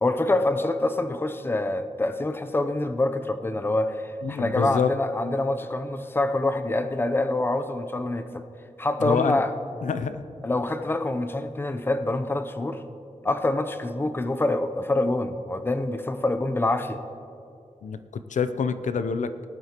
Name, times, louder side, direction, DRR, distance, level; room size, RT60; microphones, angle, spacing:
voice 1, 0.0-8.4 8.8-9.5 10.4-12.8 13.2-17.0, left 2 dB, 20° left, 8 dB, 0.6 m, -26 dB
voice 2, 4.2-4.9 9.0-9.4 9.8-10.2 17.8-19.5, left 6 dB, 85° left, 11 dB, 0.5 m, -27 dB
19.0 x 11.0 x 3.0 m, 2.6 s
wide cardioid pair, 115°, 12 cm